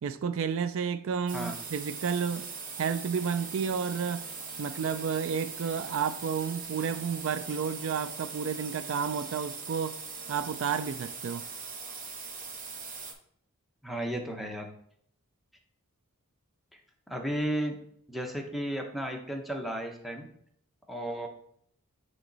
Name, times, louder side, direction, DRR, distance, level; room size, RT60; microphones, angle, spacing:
voice 1, 0.0-2.5 2.8-4.2 4.6-10.0 10.3-11.5, right 6 dB, 60° right, 0.3 m, -31 dB
sound 1, 1.3-13.1, right 5 dB, 35° right, 0.9 m, -41 dB
voice 2, 13.8-14.7 17.1-17.8 18.1-20.3 20.9-21.3, right 1 dB, ahead, 0.8 m, -33 dB
8.9 x 3.1 x 4.0 m
head